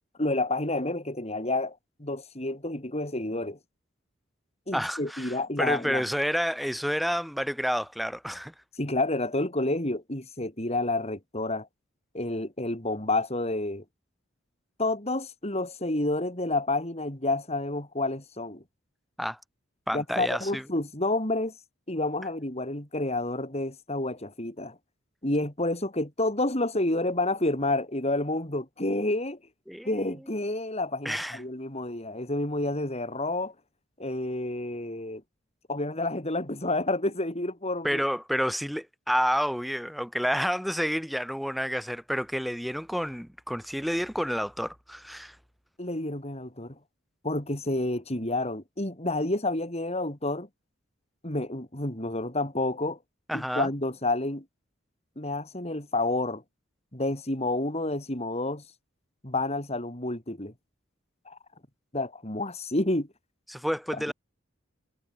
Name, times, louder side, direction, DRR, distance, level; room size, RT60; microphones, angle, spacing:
voice 1, 0.2-3.6 4.7-6.0 8.8-11.7 12.1-13.8 14.8-18.6 19.9-21.5 21.9-24.8 25.2-29.4 29.8-33.5 34.0-35.2 35.7-38.0 45.8-46.8 47.2-50.5 51.2-53.0 53.3-54.4 55.2-56.4 56.9-58.6 59.2-60.5 61.3-61.4 61.9-63.1 64.1-64.2, left 2 dB, 30° left, 4.4 m, -29 dB
voice 2, 4.7-8.5 19.2-19.4 19.9-20.6 29.7-29.9 31.0-31.4 37.8-45.4 53.3-53.7 63.5-64.1, equal, ahead, 3.8 m, -29 dB
head